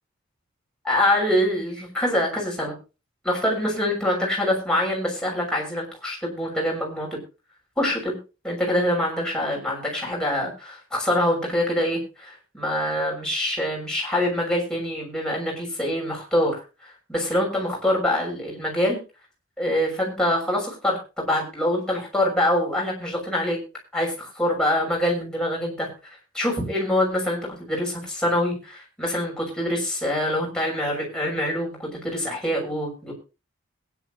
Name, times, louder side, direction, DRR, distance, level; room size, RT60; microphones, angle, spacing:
voice 1, 0.8-2.7 3.2-7.2 7.8-8.2 8.4-19.0 19.6-23.6 23.9-25.9 26.3-33.1, left 1 dB, 5° left, -3 dB, 6.2 m, -25 dB
21.5 x 10.5 x 2.9 m, 0.31 s
head